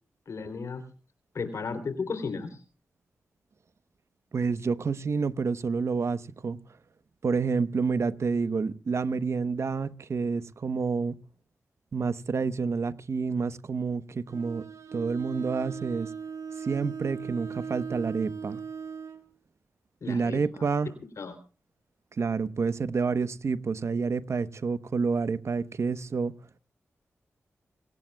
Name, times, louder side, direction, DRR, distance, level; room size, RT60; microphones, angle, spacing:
voice 1, 0.3-0.8 1.3-2.6 20.0-20.6 21.2-21.4, left 4 dB, 70° left, 3.4 m, -34 dB
voice 2, 4.3-6.6 7.2-11.2 11.9-14.6 14.9-16.1 16.6-18.6 20.1-21.0 22.2-26.4, right 5 dB, 60° right, 1.0 m, -29 dB
Bowed string instrument, 14.3-19.3, right 6 dB, 75° right, 2.1 m, -39 dB
27.5 x 18.0 x 2.3 m
cardioid pair, 50°, 5 cm